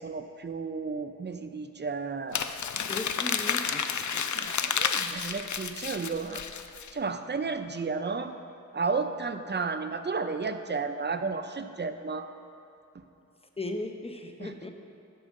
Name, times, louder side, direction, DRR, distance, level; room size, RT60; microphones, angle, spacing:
voice 1, 0.0-2.4 4.3-6.4 6.9-8.3 8.7-12.3 12.9-13.0 14.4-14.5, right 4 dB, 35° right, 8 dB, 0.5 m, -33 dB
Crumpling crinkling, 2.3-6.9, left 7 dB, 70° left, 0.5 m, -31 dB
voice 2, 2.8-4.3 13.6-14.7, left 2 dB, 20° left, 4 dB, 0.8 m, -37 dB
11.0 x 4.8 x 6.4 m, 2.6 s
wide cardioid pair, 60°, 30 cm